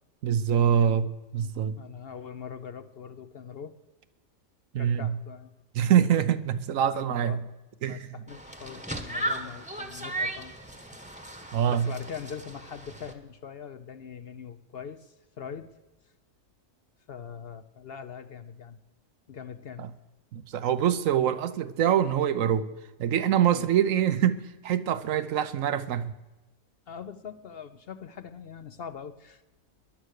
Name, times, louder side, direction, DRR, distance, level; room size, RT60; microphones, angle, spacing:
voice 1, 0.2-1.8 4.7-5.1 5.7-7.4 7.8-8.1 11.5-11.9 19.8-19.9 20.3-22.7 23.0-26.1, right 9 dB, 75° right, 1.1 m, -25 dB
voice 2, 1.8-3.8 4.7-5.5 6.9-7.4 7.9-10.5 11.7-15.8 17.1-18.8 19.3-19.9 23.5-23.7 26.9-29.4, left 7 dB, 55° left, 0.7 m, -42 dB
sound 1, 8.3-13.1, right 1 dB, 5° right, 1.0 m, -36 dB
17.5 x 11.0 x 6.5 m
omnidirectional pair, 1.4 m